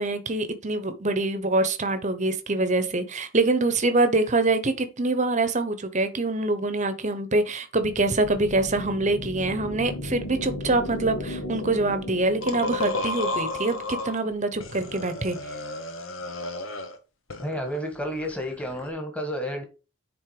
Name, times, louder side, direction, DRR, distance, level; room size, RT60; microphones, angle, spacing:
voice 1, 0.0-15.4, right 2 dB, 35° right, 1.0 m, -25 dB
sound 1, 7.8-14.3, left 1 dB, 85° left, 2.6 m, -36 dB
sound 2, 12.4-14.2 14.6-17.0 17.3-18.9, left 2 dB, 60° left, 1.5 m, -32 dB
voice 2, 17.4-19.6, equal, 5° left, 1.6 m, -31 dB
9.9 x 3.8 x 4.9 m
head